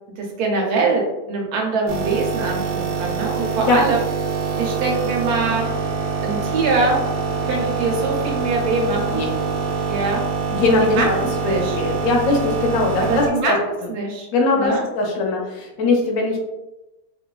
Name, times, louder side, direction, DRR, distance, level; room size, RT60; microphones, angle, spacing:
voice 1, 0.2-1.0 1.3-4.0 4.6-5.7 6.2-7.0 7.4-9.3 9.9-10.2 10.7-11.8 13.0-14.3 14.5-14.8, right 3 dB, 85° right, 0 dB, 1.2 m, -23 dB
sound 1, 1.9-13.3, right 5 dB, 60° right, 0.8 m, -25 dB
voice 2, 3.4-3.8 9.1-9.3 10.5-11.1 11.4-13.6 14.3-16.4, left 3 dB, 75° left, 0 dB, 1.0 m, -20 dB
2.8 x 2.3 x 2.2 m, 0.97 s
omnidirectional pair, 1.6 m